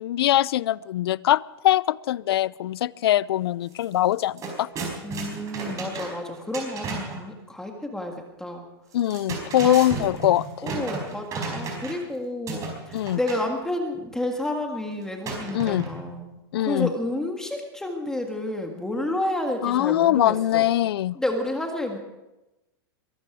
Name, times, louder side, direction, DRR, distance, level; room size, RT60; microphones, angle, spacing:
voice 1, 0.0-4.7 8.9-10.7 12.9-13.2 15.5-15.9 16.5-16.9 19.6-21.2, left 13 dB, 80° left, 22 dB, 0.4 m, -22 dB
sound 1, 3.7-3.8 4.1-7.2 8.9-12.1 12.5-13.5 15.2-16.1, right 4 dB, 25° right, 4.6 m, -34 dB
voice 2, 5.0-8.7 9.6-10.1 10.6-20.7 21.2-22.0, left 1 dB, 5° left, 3 dB, 1.8 m, -30 dB
22.5 x 13.0 x 4.9 m, 0.99 s
supercardioid pair, 145°, 13 cm